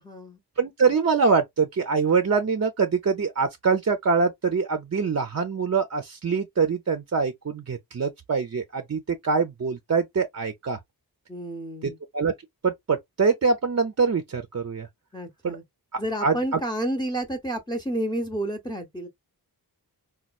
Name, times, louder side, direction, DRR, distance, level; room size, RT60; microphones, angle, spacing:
voice 1, 0.0-0.4 11.3-12.0 15.1-15.6 16.0-19.1, right 1 dB, 10° left, 0.7 m, -30 dB
voice 2, 0.6-10.8 11.8-12.3 12.6-14.9 15.4-15.6 16.2-16.3, right 5 dB, 40° right, 0.5 m, -24 dB
4.2 x 2.2 x 2.3 m
wide cardioid pair, 65°, 39 cm